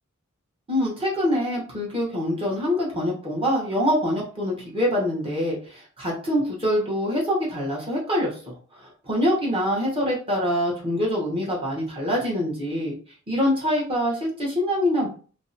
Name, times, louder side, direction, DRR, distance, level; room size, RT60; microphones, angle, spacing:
voice 1, 0.7-13.0 13.3-15.1, equal, 25° right, -4 dB, 0.9 m, -25 dB
2.6 x 2.1 x 2.6 m, 0.39 s
head